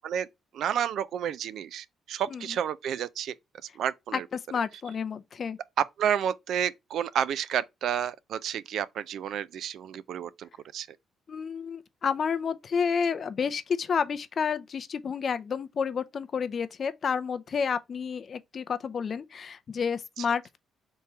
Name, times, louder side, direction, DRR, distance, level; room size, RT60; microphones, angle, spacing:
voice 1, 0.5-3.3 3.8-4.2 5.8-10.9, right 9 dB, 70° right, 0.3 m, -30 dB
voice 2, 2.3-2.6 4.1-5.6 11.3-20.6, left 6 dB, 50° left, 0.5 m, -30 dB
3.6 x 2.9 x 4.3 m
cardioid pair, 90°, 0 cm